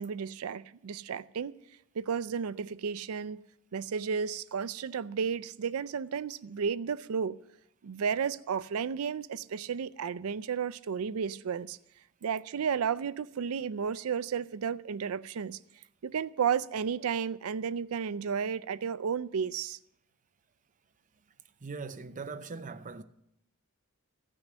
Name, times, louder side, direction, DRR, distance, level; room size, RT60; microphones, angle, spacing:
voice 1, 0.0-1.5 2.0-3.4 3.7-7.4 7.8-11.8 12.2-15.6 16.0-19.8, right 6 dB, 80° right, 0.4 m, -33 dB
voice 2, 21.6-23.0, right 4 dB, 35° right, 0.7 m, -40 dB
15.0 x 6.3 x 7.5 m
head